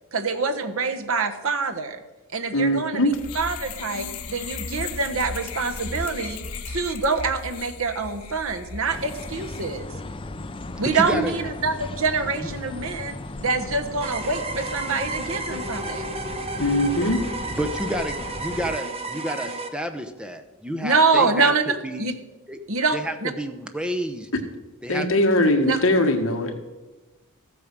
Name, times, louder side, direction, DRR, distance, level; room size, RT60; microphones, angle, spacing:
voice 1, 0.1-2.0 2.3-6.4 6.7-9.9 10.8-13.2 13.4-16.2 20.8-22.1 22.7-23.3 25.6-25.8, right 4 dB, 65° right, 7 dB, 1.2 m, -25 dB
voice 2, 2.5-3.2 11.1-11.2 16.6-17.2 24.9-26.6, left 1 dB, 60° left, 4 dB, 1.6 m, -21 dB
sound 1, 3.1-9.8, left 4 dB, 85° left, 1.1 m, -36 dB
sound 2, 8.9-18.8, left 2 dB, 25° left, 0.5 m, -36 dB
voice 3, 10.8-11.3 12.4-12.5 17.5-22.2 22.5-22.6 22.9-24.3 24.8-25.1, equal, 5° right, 6 dB, 0.8 m, -30 dB
sound 3, 14.0-19.7, right 2 dB, 25° right, 1.0 m, -32 dB
14.0 x 8.6 x 6.1 m, 1.1 s
head